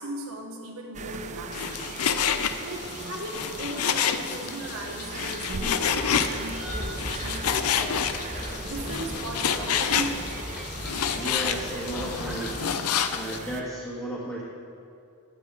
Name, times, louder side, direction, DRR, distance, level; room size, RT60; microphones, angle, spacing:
voice 1, 0.0-1.9 2.6-8.0 8.6-10.4, right 1 dB, 70° right, 1 dB, 1.1 m, -37 dB
sound 1, 0.9-13.6, right 4 dB, 35° right, 0.5 m, -39 dB
Frying (food), 1.5-13.4, left 8 dB, 90° left, 0.6 m, -29 dB
sound 2, 5.8-12.6, equal, 5° right, 1.7 m, -38 dB
voice 2, 11.1-12.6 13.1-14.4, right 1 dB, 10° left, -8 dB, 1.4 m, -34 dB
14.0 x 7.4 x 4.7 m, 2.6 s
head